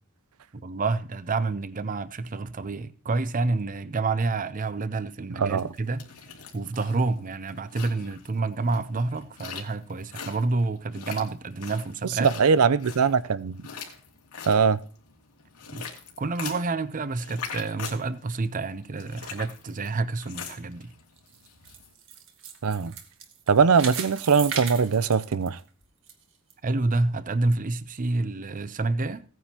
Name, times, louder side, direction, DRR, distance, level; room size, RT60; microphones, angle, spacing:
voice 1, 0.5-6.1 6.5-12.3 15.7-15.9 16.2-20.9 26.6-29.2, right 3 dB, 35° right, 0.6 m, -28 dB
voice 2, 5.4-5.7 12.2-13.6 14.5-14.8 22.6-22.9 23.5-25.6, right 5 dB, 80° right, 0.6 m, -21 dB
sound 1, 5.6-21.9, left 6 dB, 90° left, 2.3 m, -43 dB
sound 2, 21.2-26.1 26.5-26.6 27.2-27.3, right 7 dB, 60° right, 1.5 m, -37 dB
16.5 x 9.3 x 2.9 m
head